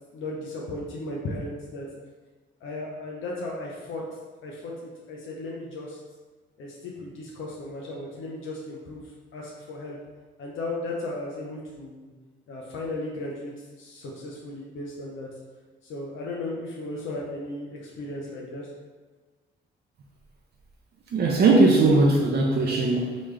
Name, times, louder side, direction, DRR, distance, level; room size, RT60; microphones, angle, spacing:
voice 1, 0.1-1.9 2.6-4.1 4.4-6.0 6.6-10.0 10.4-12.1 12.5-13.5 13.8-15.3 15.8-18.7, left 2 dB, 75° left, -3 dB, 0.7 m, -35 dB
voice 2, 21.1-23.2, right 3 dB, 55° right, -1 dB, 0.7 m, -19 dB
3.9 x 3.3 x 3.2 m, 1.4 s
cardioid pair, 90°, 20 cm